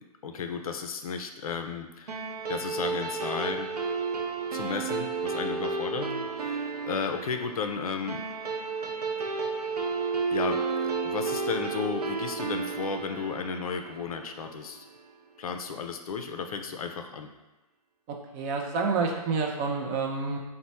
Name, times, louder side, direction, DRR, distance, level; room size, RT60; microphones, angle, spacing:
voice 1, 0.0-3.7 4.5-8.2 10.3-14.8 15.4-17.3, left 6 dB, 65° left, 6 dB, 0.4 m, -34 dB
sound 1, 2.1-14.8, right 4 dB, 85° right, 0.4 m, -32 dB
voice 2, 18.1-20.4, right 4 dB, 25° right, 1 dB, 0.4 m, -29 dB
3.0 x 2.1 x 4.1 m, 1.1 s
figure-of-eight pair, 125°, 20 cm